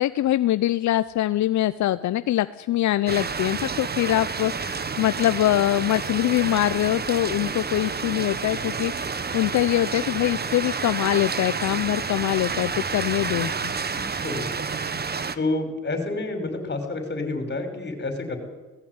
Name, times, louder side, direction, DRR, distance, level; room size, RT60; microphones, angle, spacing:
voice 1, 0.0-13.7, left 14 dB, 70° left, 13 dB, 0.7 m, -23 dB
sound 1, 3.1-15.4, right 5 dB, 30° right, 1.4 m, -30 dB
voice 2, 13.9-14.5 15.3-18.4, left 2 dB, 35° left, 6 dB, 5.7 m, -29 dB
19.0 x 15.0 x 9.7 m, 1.2 s
cardioid pair, 90°, 30 cm